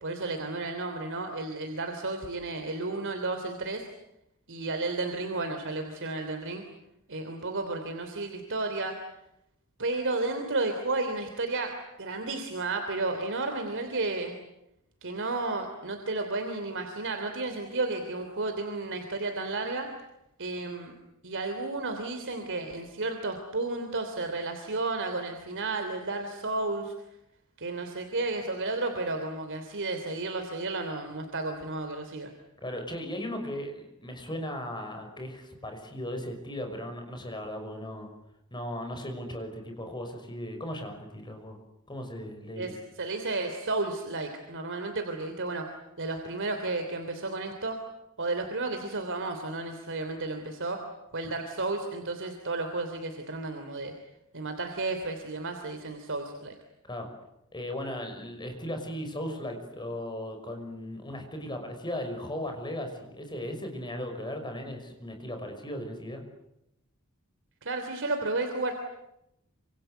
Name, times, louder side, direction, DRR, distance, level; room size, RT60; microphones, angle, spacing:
voice 1, 0.0-3.9 4.5-6.6 7.1-9.0 9.8-14.3 15.0-19.9 20.4-20.9 21.2-26.9 27.6-32.3 42.6-45.6 46.0-47.8 48.2-50.8 51.1-53.9 54.3-56.5 67.6-68.7, right 2 dB, 60° right, 5 dB, 3.2 m, -32 dB
voice 2, 32.6-38.1 38.5-41.6 41.9-42.7 56.8-57.1 57.5-66.2, left 1 dB, 20° left, 5 dB, 5.9 m, -37 dB
27.5 x 26.5 x 8.0 m, 0.83 s
head